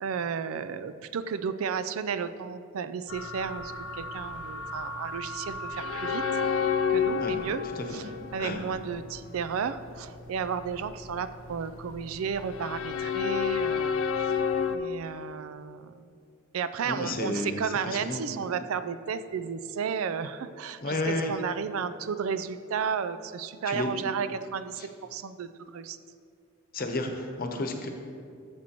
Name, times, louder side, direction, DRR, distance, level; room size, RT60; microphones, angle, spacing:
voice 1, 0.0-6.3 6.9-7.6 7.9-8.0 8.3-14.0 14.7-16.0 16.5-26.0, right 6 dB, 80° right, 13 dB, 0.4 m, -33 dB
sound 1, 3.1-14.8, left 6 dB, 70° left, 0.5 m, -31 dB
voice 2, 7.6-8.0 8.4-8.6 16.8-18.3 20.8-21.3 23.7-24.1 24.8-24.9 26.7-27.9, left 2 dB, 45° left, 4 dB, 0.9 m, -32 dB
14.0 x 7.5 x 3.0 m, 2.4 s
head